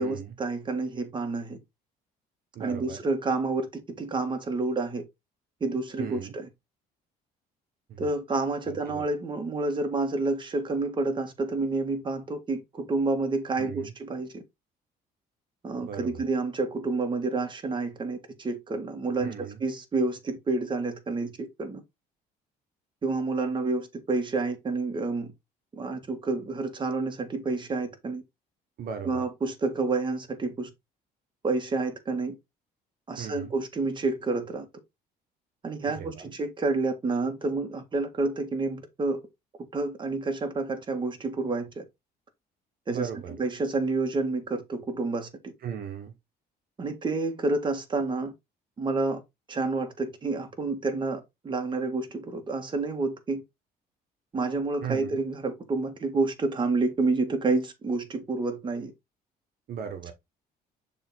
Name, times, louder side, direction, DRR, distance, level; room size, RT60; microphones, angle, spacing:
voice 1, 0.0-1.6 2.6-5.0 5.6-6.5 8.0-14.4 15.6-21.8 23.0-25.3 25.7-28.2 29.0-30.7 31.4-32.3 33.1-34.7 35.6-39.2 39.7-41.8 42.9-45.3 46.8-48.3 48.8-49.2 49.5-53.4 54.3-58.9, right 3 dB, 30° right, 1.8 m, -29 dB
voice 2, 2.5-3.0 6.0-6.3 7.9-8.0 8.7-9.1 13.6-13.9 15.8-16.2 19.2-19.6 28.8-29.2 33.2-33.5 35.8-36.2 42.9-43.3 45.6-46.1 54.8-55.2 59.7-60.1, right 7 dB, 60° right, 1.4 m, -37 dB
6.8 x 3.6 x 4.3 m
cardioid pair, 110°, 17 cm